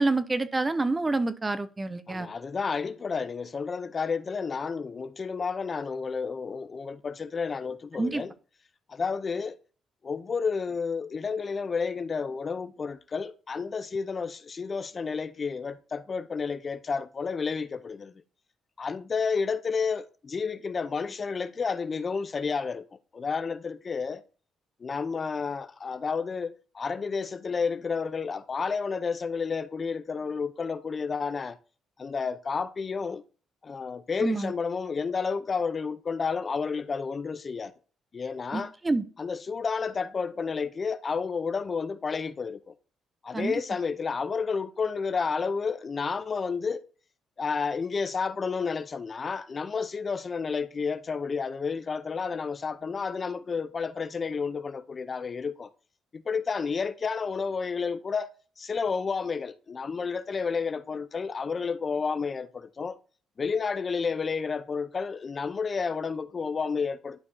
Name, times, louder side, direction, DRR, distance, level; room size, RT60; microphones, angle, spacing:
voice 1, 0.0-2.3 8.0-8.2 34.2-34.5 38.5-39.0 43.3-43.5, right 3 dB, 20° right, 0.6 m, -27 dB
voice 2, 2.1-8.3 8.9-9.6 10.0-18.1 18.8-22.9 23.1-24.2 24.8-31.6 32.0-33.2 33.6-37.7 38.1-38.7 39.2-42.7 43.2-46.8 47.4-55.7 56.1-58.3 58.6-63.0 63.4-67.2, left 5 dB, 40° left, 0.6 m, -31 dB
11.5 x 4.5 x 2.7 m
cardioid pair, 90°, 0 cm